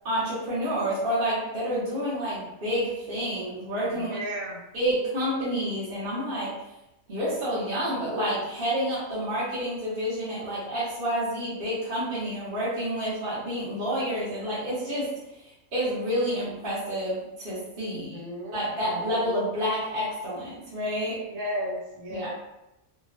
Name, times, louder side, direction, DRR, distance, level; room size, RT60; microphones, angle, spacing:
voice 1, 0.0-4.2 4.7-6.5 7.1-15.1 15.4-18.2 18.5-21.2 22.1-22.3, equal, 45° right, -10 dB, 1.0 m, -29 dB
voice 2, 3.8-4.6 17.9-19.4 21.2-22.3, equal, 70° right, -5 dB, 1.3 m, -35 dB
3.0 x 2.1 x 2.5 m, 0.91 s
omnidirectional pair, 1.5 m